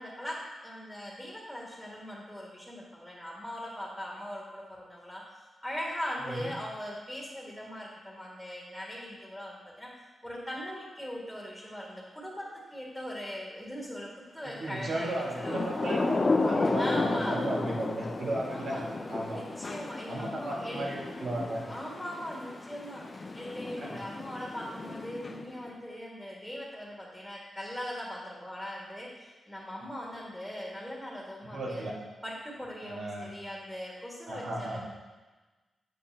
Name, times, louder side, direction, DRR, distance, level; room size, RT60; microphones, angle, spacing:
voice 1, 0.0-9.9 10.2-15.7 16.7-17.4 18.5-18.8 19.3-20.8 21.7-31.8 32.2-34.9, equal, 5° left, -5 dB, 1.9 m, -40 dB
voice 2, 14.4-18.8 19.1-19.4 20.1-21.7 23.8-23.9 31.5-32.0 32.8-33.3 34.3-34.8, right 1 dB, 65° right, -2 dB, 1.6 m, -35 dB
Thunder / Rain, 15.1-25.7, left 3 dB, 40° left, 0.7 m, -33 dB
8.1 x 7.3 x 2.9 m, 1.2 s
cardioid pair, 75°, 0 cm